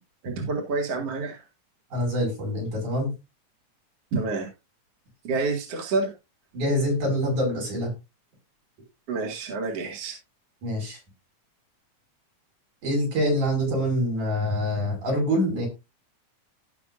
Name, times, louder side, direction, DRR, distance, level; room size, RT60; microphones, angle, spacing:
voice 1, 0.2-1.4 4.1-4.5 5.2-6.1 9.1-10.2, right 3 dB, 55° right, 0 dB, 2.9 m, -28 dB
voice 2, 1.9-3.1 6.5-7.9 10.6-11.0 12.8-15.7, equal, 75° right, 0 dB, 7.0 m, -25 dB
17.5 x 5.9 x 2.5 m, 0.25 s
omnidirectional pair, 3.5 m